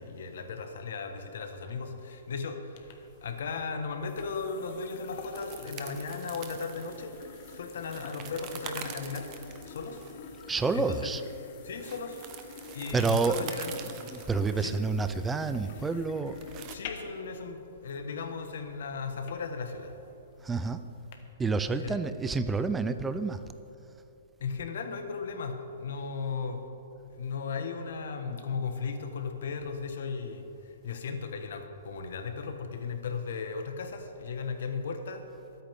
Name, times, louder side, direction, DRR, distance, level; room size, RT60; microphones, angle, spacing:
voice 1, 0.0-7.2 7.5-9.3 9.7-10.0 10.7-11.1 11.6-12.3 12.7-13.7 14.6-14.8 16.7-19.9 21.8-22.0 24.4-26.7 27.1-35.2, left 5 dB, 70° left, 5 dB, 1.5 m, -36 dB
sound 1, 2.7-21.2, left 6 dB, 45° left, 1.1 m, -48 dB
sound 2, 5.3-16.7, right 9 dB, 30° right, 0.8 m, -45 dB
voice 2, 10.5-11.2 12.9-13.5 14.0-16.4 20.4-20.9 21.4-23.4, right 4 dB, 10° right, 11 dB, 0.4 m, -29 dB
23.0 x 8.8 x 3.7 m, 2.8 s
hypercardioid pair, 160°, 0 cm